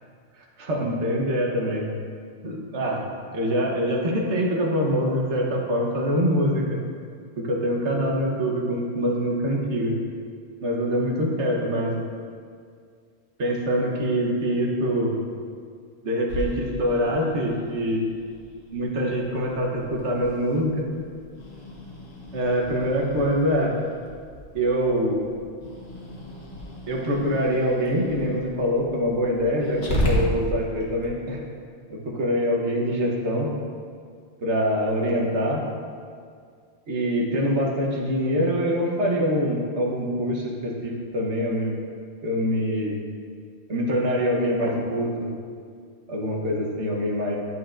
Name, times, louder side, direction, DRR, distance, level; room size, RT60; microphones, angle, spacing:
voice 1, 0.4-1.9 2.4-3.0 3.3-6.8 7.4-10.0 10.6-12.0 13.4-15.1 16.0-18.0 18.7-20.9 22.3-23.7 24.5-25.2 26.9-31.4 31.9-33.5 34.4-35.6 36.9-41.7 42.2-43.0 43.7-45.3 46.1-47.4, equal, 80° right, -1 dB, 1.4 m, -24 dB
Growling, 16.3-31.1, equal, 65° left, 1.5 m, -34 dB
9.1 x 8.4 x 2.5 m, 2.1 s
omnidirectional pair, 1.1 m